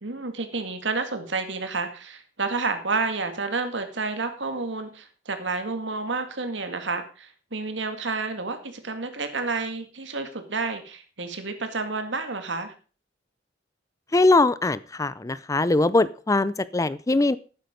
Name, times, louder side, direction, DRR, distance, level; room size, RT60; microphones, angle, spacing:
voice 1, 0.0-12.7, right 3 dB, 85° right, 7 dB, 2.1 m, -30 dB
voice 2, 14.1-17.4, left 2 dB, 20° left, 17 dB, 0.5 m, -21 dB
12.0 x 9.1 x 5.2 m, 0.38 s
head